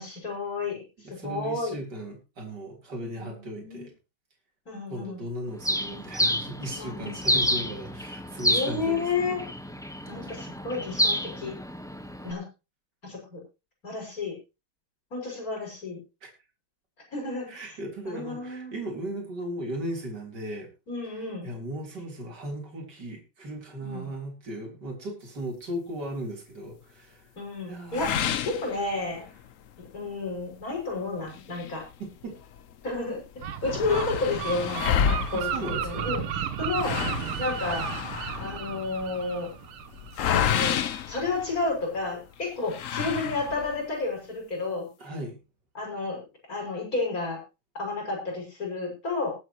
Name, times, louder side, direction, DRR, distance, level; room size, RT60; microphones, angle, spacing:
voice 1, 0.0-1.8 3.2-3.9 4.7-5.2 6.8-7.2 8.5-9.4 10.1-11.5 12.2-12.4 13.0-13.4 13.8-14.3 15.1-16.0 17.1-17.7 18.0-18.7 20.9-21.5 23.8-24.1 27.4-28.1 28.4-29.3 29.8-31.8 32.8-33.2 33.6-37.0 37.4-37.9 38.4-39.5 40.3-40.8 41.1-44.9 45.7-46.2 46.5-47.4 47.7-49.3, left 3 dB, 40° left, -1 dB, 6.7 m, -31 dB
voice 2, 1.0-3.9 4.9-9.4 10.2-10.5 17.5-20.7 21.4-27.3 27.7-28.4 32.0-32.4 35.3-36.1 45.0-45.4, right 1 dB, 50° right, 0 dB, 4.2 m, -37 dB
Bird, 5.6-12.3, equal, 5° left, 0.3 m, -29 dB
sound 1, 27.9-29.4 29.8-29.9 30.4-30.5 31.3-32.6 32.9-33.0 33.2-42.0 42.7-43.8, left 8 dB, 70° left, 0.7 m, -30 dB
Gull seagull, 33.4-40.9, right 9 dB, 85° right, 1.9 m, -34 dB
20.0 x 8.9 x 3.0 m, 0.29 s
omnidirectional pair, 2.3 m